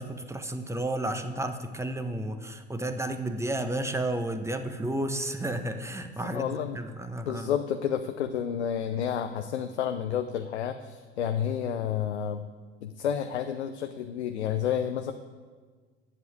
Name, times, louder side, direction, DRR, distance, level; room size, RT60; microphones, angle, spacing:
voice 1, 0.0-7.5, right 1 dB, 10° right, 7 dB, 1.1 m, -32 dB
voice 2, 6.3-6.8 7.3-12.5 12.8-15.1, left 9 dB, 75° left, 8 dB, 0.7 m, -30 dB
11.0 x 7.7 x 8.8 m, 1.5 s
figure-of-eight pair, 70°, 33 cm